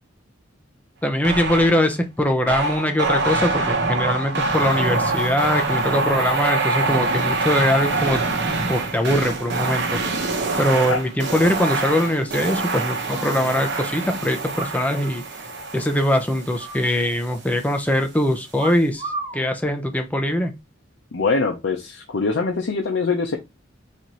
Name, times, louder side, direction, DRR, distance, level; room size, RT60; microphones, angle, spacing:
voice 1, 1.0-8.2 8.7-9.8 10.6-15.2 15.7-20.5, left 1 dB, 10° left, 0.6 m, -22 dB
sound 1, 1.2-1.9 2.5-17.1, right 3 dB, 65° right, 0.8 m, -25 dB
sound 2, 3.1-3.5 3.9-6.0 6.2-7.3 8.0-8.6 8.9-9.2 9.6-10.2 10.5-10.6 10.8-10.9 11.2-11.3 11.6-11.7 12.4-13.4 14.5-15.1 15.3-15.4 15.8-16.1 16.6-17.5 18.6-19.4 20.2-20.5, right 2 dB, 30° right, 0.7 m, -37 dB
voice 2, 21.1-23.4, left 4 dB, 70° left, 0.6 m, -23 dB
4.2 x 2.6 x 3.1 m
head